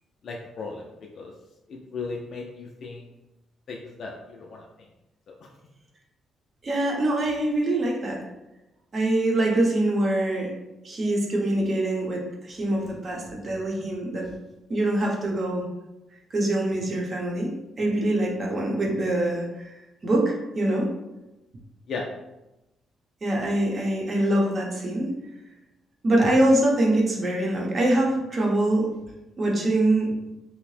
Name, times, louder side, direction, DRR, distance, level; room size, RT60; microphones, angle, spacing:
voice 1, 0.2-0.9 1.1-1.3 1.7-3.1 3.7-4.7 5.3-5.5 21.9-22.1, left 4 dB, 60° left, -1 dB, 0.3 m, -36 dB
voice 2, 6.6-8.2 8.9-10.5 10.8-14.3 14.7-15.6 16.3-19.7 20.0-20.9 23.2-25.2 26.0-28.9 29.4-30.2, right 1 dB, 40° right, -2 dB, 0.8 m, -24 dB
2.7 x 2.0 x 3.1 m, 0.98 s
cardioid pair, 90°, 0 cm